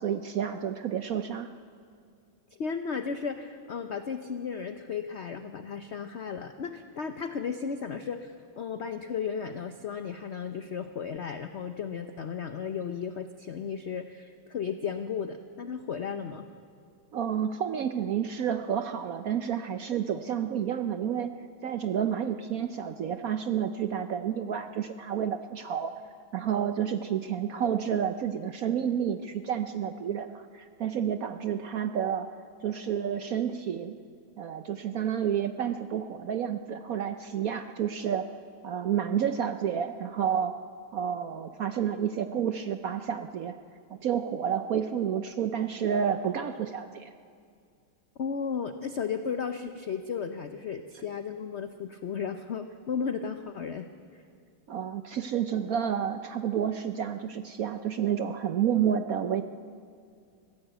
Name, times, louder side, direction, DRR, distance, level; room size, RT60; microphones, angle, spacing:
voice 1, 0.0-1.5 17.1-21.3 21.6-25.9 26.3-32.3 32.6-34.0 34.4-38.3 38.6-40.6 40.9-43.6 43.9-47.1 54.7-59.4, right 8 dB, 65° right, 9 dB, 0.9 m, -30 dB
voice 2, 2.5-16.5 48.2-53.9 54.1-54.2, left 6 dB, 60° left, 8 dB, 0.7 m, -34 dB
25.5 x 15.5 x 8.0 m, 2.3 s
omnidirectional pair, 2.1 m